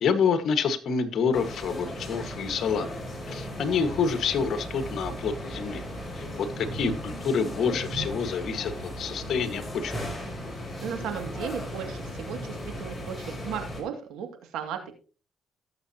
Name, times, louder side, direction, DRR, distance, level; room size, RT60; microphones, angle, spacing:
voice 1, 0.0-2.9 3.3-5.8 6.1-9.9, left 6 dB, 65° left, 10 dB, 1.5 m, -27 dB
sound 1, 1.3-13.8, equal, 15° left, 4.5 m, -36 dB
voice 2, 10.8-14.3 14.5-14.9, right 8 dB, 85° right, 6 dB, 2.3 m, -35 dB
18.0 x 7.2 x 2.9 m, 0.35 s
cardioid pair, 90°, 0 cm